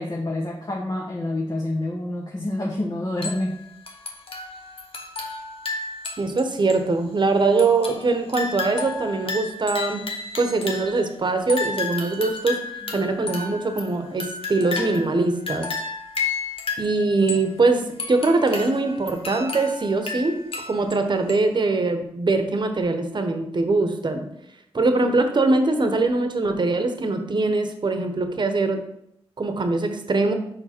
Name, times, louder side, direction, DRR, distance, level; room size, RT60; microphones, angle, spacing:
voice 1, 0.0-3.6 12.8-13.0, left 1 dB, 40° left, -2 dB, 1.1 m, -28 dB
sound 1, 3.2-3.6 3.9-6.4 6.7-6.8 7.6-11.1 11.5-15.2 15.5-17.5 18.0-20.9 21.3-21.4, left 4 dB, 60° left, 1.1 m, -32 dB
voice 2, 6.2-10.0 10.4-12.6 12.9-15.7 16.8-20.3 20.7-24.3 24.7-28.8 29.4-30.3, right 3 dB, 45° right, 6 dB, 0.9 m, -22 dB
5.2 x 4.7 x 4.4 m, 0.77 s
cardioid pair, 55°, 10 cm